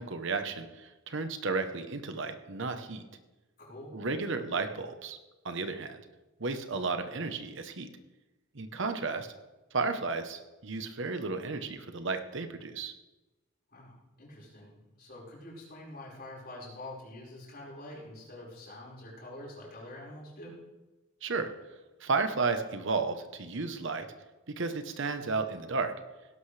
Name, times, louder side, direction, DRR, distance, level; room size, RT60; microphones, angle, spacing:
voice 1, 0.0-3.1 3.9-5.2 5.4-6.0 6.4-7.9 8.5-9.3 9.7-12.9 21.2-21.5 22.0-24.1 24.6-25.9, right 4 dB, 65° right, 8 dB, 1.1 m, -33 dB
voice 2, 3.6-4.0 13.7-20.6, left 1 dB, 50° left, -4 dB, 5.1 m, -46 dB
17.5 x 11.5 x 3.4 m, 1.1 s
head